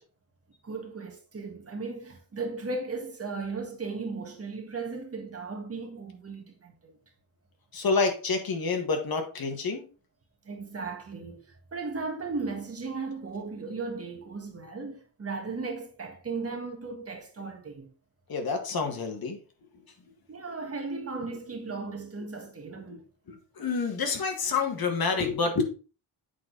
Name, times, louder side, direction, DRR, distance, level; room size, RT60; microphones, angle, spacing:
voice 1, 0.6-7.0 10.4-17.9 20.3-23.0, right 4 dB, 30° right, 1.7 m, -36 dB
voice 2, 7.7-9.9 18.3-19.4 22.9-23.0 23.3-25.6, left 4 dB, 50° left, 1.8 m, -28 dB
8.4 x 4.2 x 4.0 m
cardioid pair, 125°, 47 cm